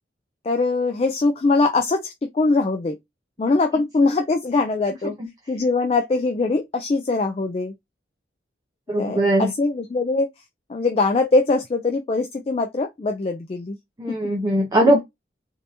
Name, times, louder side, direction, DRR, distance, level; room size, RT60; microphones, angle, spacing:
voice 1, 0.4-3.0 3.4-5.2 5.5-7.7 9.0-10.4 10.7-13.8, left 3 dB, 30° left, 0.3 m, -22 dB
voice 2, 8.9-9.5 14.0-15.0, right 1 dB, 20° right, 0.6 m, -19 dB
3.4 x 2.7 x 2.7 m
head